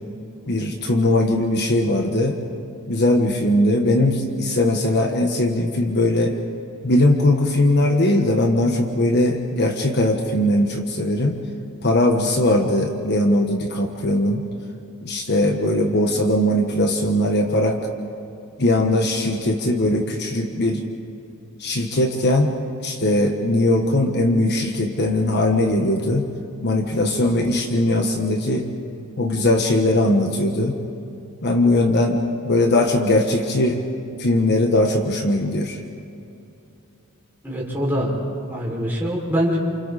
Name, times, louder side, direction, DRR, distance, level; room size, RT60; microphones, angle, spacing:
voice 1, 0.5-2.4 2.9-6.3 6.8-11.4 11.8-14.4 15.0-17.8 18.6-20.8 21.6-22.5 22.8-26.2 26.6-28.7 29.2-30.7 31.4-33.8 34.2-35.8, left 1 dB, 50° left, 3 dB, 1.4 m, -20 dB
voice 2, 37.4-38.1 38.5-39.6, equal, 10° right, -5 dB, 5.5 m, -23 dB
29.5 x 28.5 x 4.2 m, 2.7 s
head